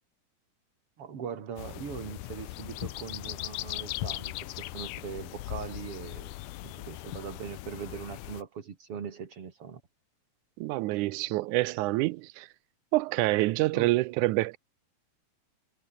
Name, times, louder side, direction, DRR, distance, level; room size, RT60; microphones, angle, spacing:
voice 1, 1.0-9.8 13.7-13.9, right 7 dB, 50° right, 3.2 m, -41 dB
sound 1, 1.6-8.4, left 18 dB, 85° left, 2.3 m, -39 dB
voice 2, 10.6-12.5 12.9-14.6, right 20 dB, 80° right, 2.1 m, -27 dB
omnidirectional pair, 3.6 m